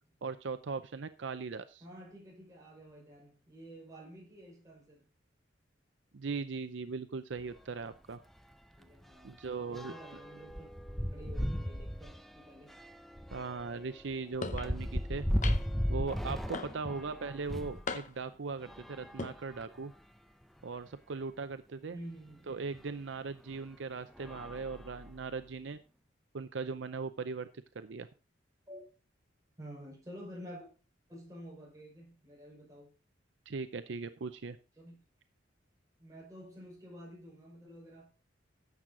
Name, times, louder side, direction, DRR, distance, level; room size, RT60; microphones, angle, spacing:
voice 1, 0.2-1.8 6.1-8.2 9.2-9.9 13.3-15.3 15.9-19.9 20.6-22.0 22.5-25.8 26.3-27.5 27.7-28.1 33.5-34.6, right 4 dB, 70° right, 0.6 m, -39 dB
voice 2, 1.8-5.1 8.8-10.7 11.1-12.8 16.8-17.3 21.9-22.5 28.7-28.9 29.6-30.7 31.1-32.9 34.8-35.0 36.0-38.1, equal, 20° right, 5.5 m, -50 dB
sound 1, 7.4-7.6 7.9-8.1 8.4-17.9 18.6-19.9 20.6-20.7 20.9-21.0 22.7-22.8 23.5-23.8 24.1-25.4, equal, ahead, 0.5 m, -37 dB
sound 2, 14.4-14.7 15.4-15.8 16.5-17.0 17.9-18.3 19.0-19.3, left 4 dB, 40° left, 0.7 m, -39 dB
11.0 x 7.6 x 3.8 m
head